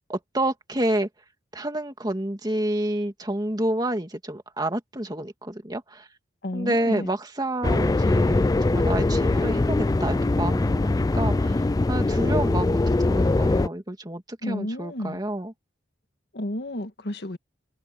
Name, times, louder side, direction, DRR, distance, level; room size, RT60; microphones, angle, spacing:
voice 1, 0.1-1.1 1.5-6.1 6.5-15.5, right 1 dB, 20° right, 2.4 m, -29 dB
voice 2, 6.4-7.1 14.4-15.2 16.3-17.4, left 1 dB, 60° left, 1.7 m, -31 dB
sound 1, 7.6-13.7, left 2 dB, 20° left, 0.3 m, -22 dB
head